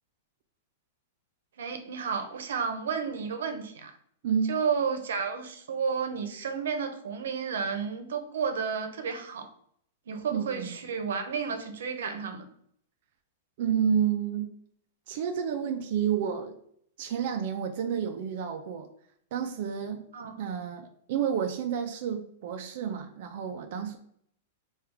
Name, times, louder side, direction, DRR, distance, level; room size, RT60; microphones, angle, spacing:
voice 1, 1.6-4.0 4.5-9.5 10.1-12.5 20.1-20.3, right 6 dB, 90° right, 7 dB, 0.6 m, -32 dB
voice 2, 4.2-4.6 10.3-10.7 13.6-14.5 15.1-16.6 17.0-18.9 19.3-20.0 20.4-24.0, right 8 dB, 45° right, 5 dB, 0.4 m, -30 dB
4.4 x 2.3 x 3.5 m, 0.65 s
supercardioid pair, 175°, 0 cm